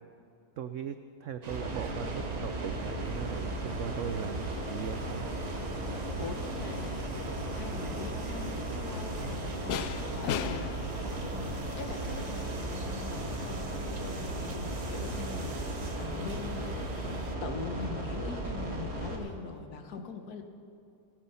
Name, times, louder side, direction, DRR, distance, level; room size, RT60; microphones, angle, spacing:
voice 1, 0.6-5.3, right 8 dB, 90° right, 10 dB, 0.6 m, -38 dB
sound 1, 1.4-17.4, right 3 dB, 40° right, 0.6 m, -47 dB
sound 2, 1.5-19.2, right 1 dB, 55° right, 3.0 m, -36 dB
voice 2, 6.2-7.1 7.5-10.8 11.3-20.4, left 5 dB, 60° left, 6 dB, 1.7 m, -43 dB
sound 3, 8.3-16.2, left 9 dB, 80° left, 1.3 m, -42 dB
18.0 x 14.5 x 5.6 m, 2.4 s
omnidirectional pair, 2.0 m